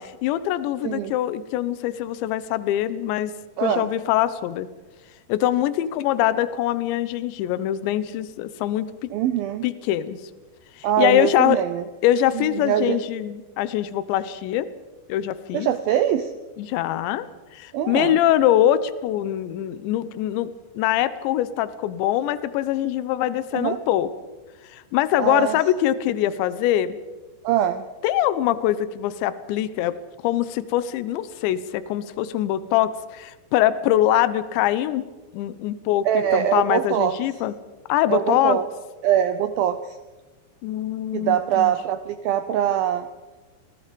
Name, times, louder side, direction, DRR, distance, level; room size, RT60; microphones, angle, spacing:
voice 1, 0.0-3.3 3.6-4.7 5.3-9.1 9.6-10.2 11.0-11.6 12.0-14.7 15.1-15.7 16.6-17.3 17.5-24.1 24.7-27.0 28.0-29.9 30.2-35.0 35.3-37.5 37.9-38.6 40.6-41.7, left 12 dB, 80° left, 15 dB, 3.2 m, -23 dB
voice 2, 0.8-1.2 3.6-3.9 9.1-9.6 10.8-11.8 12.3-13.0 15.5-16.3 17.7-18.2 23.5-23.8 25.2-25.6 27.4-27.9 36.0-37.2 38.1-38.6 39.0-40.0 41.1-43.1, right 10 dB, 80° right, 10 dB, 2.1 m, -23 dB
27.5 x 20.5 x 5.2 m, 1.2 s
omnidirectional pair, 5.2 m